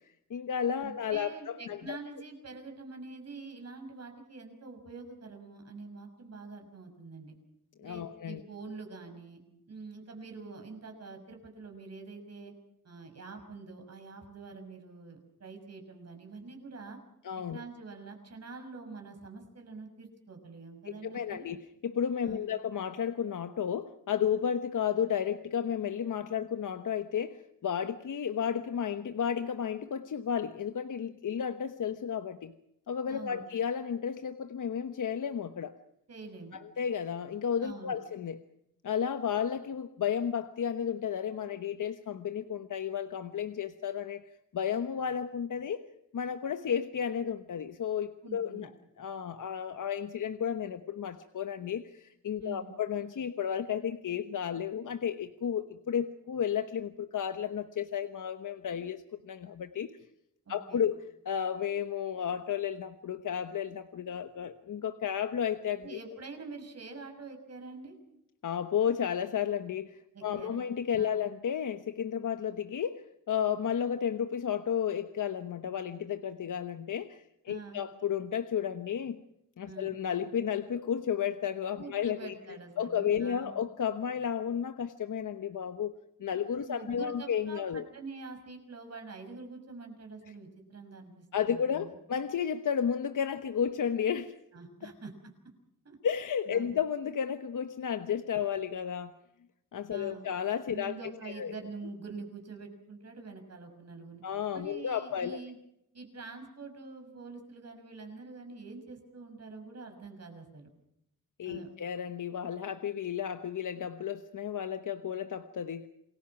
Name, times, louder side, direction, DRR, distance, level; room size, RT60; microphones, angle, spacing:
voice 1, 0.0-2.0 7.8-8.4 17.2-17.6 20.9-21.6 21.8-32.5 32.9-35.7 36.5-38.4 38.8-44.2 44.5-45.8 46.1-48.7 49.0-59.9 60.5-61.0 61.2-66.0 68.4-79.2 79.6-85.9 86.2-87.8 91.3-94.3 94.8-94.9 96.0-99.1 99.7-101.5 104.2-105.4 111.4-115.9, left 8 dB, 70° left, 9 dB, 1.2 m, -33 dB
voice 2, 0.8-7.3 7.8-9.4 9.7-12.5 12.8-17.0 17.5-21.5 22.2-22.5 33.1-33.4 36.1-36.6 37.6-38.0 48.2-48.7 52.4-52.8 60.4-60.9 65.8-68.0 70.1-70.6 71.0-71.1 77.5-77.8 79.6-80.0 81.8-83.5 86.6-92.0 94.5-95.1 95.8-96.0 96.5-96.7 99.9-100.3 100.7-104.2 104.5-105.6 105.9-110.7 111.4-111.7, right 4 dB, 50° right, 4 dB, 6.2 m, -46 dB
28.0 x 21.0 x 6.0 m, 0.78 s
wide cardioid pair, 140°, 33 cm